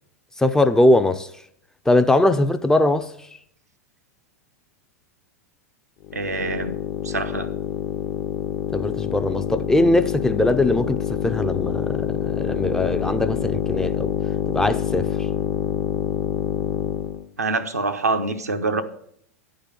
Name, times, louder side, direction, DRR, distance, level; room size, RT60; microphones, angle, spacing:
voice 1, 0.4-1.3 1.9-3.1 8.7-14.1 14.5-15.1, left 1 dB, 5° left, 0.4 m, -20 dB
sound 1, 6.0-17.2, left 9 dB, 40° left, 0.7 m, -26 dB
voice 2, 6.1-6.8 7.0-7.5 17.4-18.8, right 3 dB, 90° right, 0.7 m, -25 dB
9.7 x 3.9 x 6.9 m
figure-of-eight pair, 95°, 8 cm